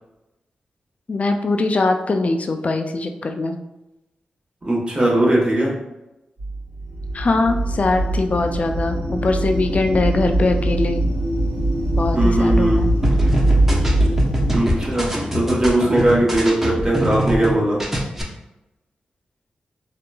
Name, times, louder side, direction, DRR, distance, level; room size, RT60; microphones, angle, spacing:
voice 1, 1.1-3.6 7.1-11.0 12.0-12.9, left 3 dB, 45° left, 5 dB, 0.4 m, -21 dB
voice 2, 4.6-5.7 12.1-12.9 14.5-17.8, right 1 dB, 35° right, -4 dB, 1.1 m, -19 dB
sound 1, 6.4-14.6, right 1 dB, 65° right, 1.2 m, -21 dB
sound 2, 13.0-17.5 17.8-18.2, equal, 10° right, 0.8 m, -24 dB
2.9 x 2.4 x 2.2 m, 0.96 s
supercardioid pair, 40°, 3 cm